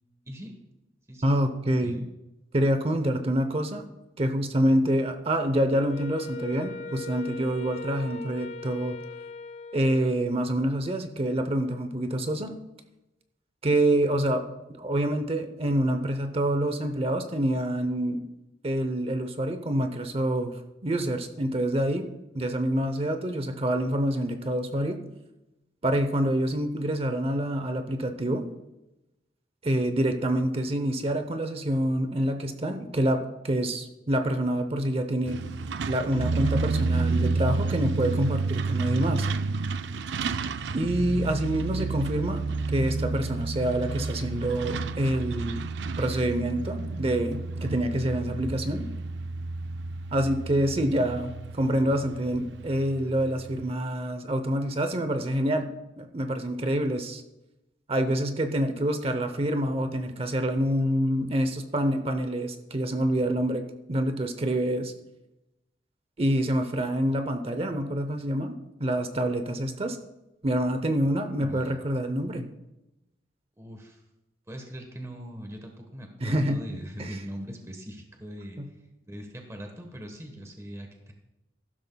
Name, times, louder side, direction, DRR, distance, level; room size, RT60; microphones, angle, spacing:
voice 1, 1.2-2.1 2.5-3.9 4.2-9.0 9.7-12.5 13.6-14.4 14.7-18.2 18.6-22.1 22.3-25.0 25.8-28.5 29.6-35.4 35.9-39.3 40.7-42.4 42.7-45.6 46.0-48.9 50.1-55.7 56.0-57.2 57.9-64.9 66.2-70.0 70.4-72.5 76.2-76.6 77.0-77.2 78.6-78.7, right 1 dB, 35° right, 8 dB, 0.7 m, -27 dB
Wind instrument woodwind instrument, 5.7-10.4, left 3 dB, 40° left, 0.4 m, -39 dB
Truck, 35.3-53.7, right 3 dB, 75° right, 0.4 m, -31 dB
voice 2, 71.4-71.8 73.6-74.0 74.5-78.6 79.1-81.1, equal, 15° right, 3 dB, 1.2 m, -41 dB
15.0 x 12.5 x 2.3 m, 0.98 s
head